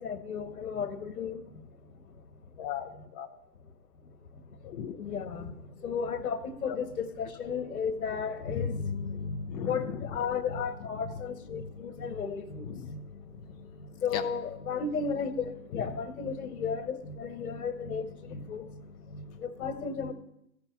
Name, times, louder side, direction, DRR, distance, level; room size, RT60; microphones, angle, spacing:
voice 1, 0.0-1.4 4.9-5.5 5.8-13.0 14.0-18.7 19.1-20.1, left 6 dB, 60° left, 8 dB, 1.7 m, -34 dB
voice 2, 2.6-3.3 4.6-5.0 6.7-6.8 9.5-10.1 12.6-12.9 14.1-14.2 15.7-15.9 18.3-18.4, left 9 dB, 20° left, 3 dB, 0.7 m, -37 dB
14.0 x 5.8 x 8.4 m, 0.78 s
figure-of-eight pair, 130°, 49 cm